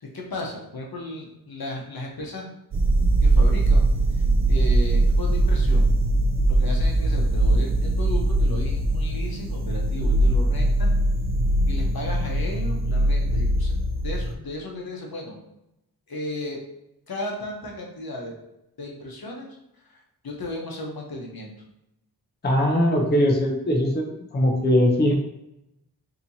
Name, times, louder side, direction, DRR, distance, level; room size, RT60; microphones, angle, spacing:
voice 1, 0.0-2.5 3.2-3.9 4.5-5.9 6.5-10.9 11.7-13.7 14.0-15.4 16.1-16.6 17.1-18.3 18.8-19.5 20.2-21.5 23.2-23.3, left 1 dB, 65° left, -1 dB, 1.0 m, -35 dB
sound 1, 2.7-14.3, right 1 dB, 35° right, 0.4 m, -21 dB
voice 2, 22.4-25.1, equal, 25° left, 1 dB, 0.6 m, -21 dB
4.2 x 2.9 x 2.7 m, 0.86 s
wide cardioid pair, 65°, 39 cm